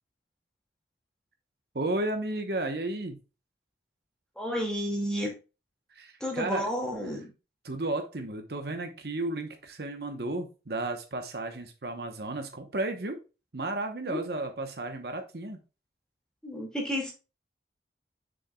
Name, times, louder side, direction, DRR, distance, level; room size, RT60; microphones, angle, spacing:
voice 1, 1.7-3.2 5.9-6.7 7.6-13.2 13.5-15.6, right 2 dB, 60° right, 5 dB, 1.0 m, -33 dB
voice 2, 4.4-5.3 6.2-7.3 14.1-14.2 16.4-17.1, equal, 5° left, -1 dB, 2.1 m, -31 dB
7.2 x 6.4 x 2.3 m, 0.30 s
head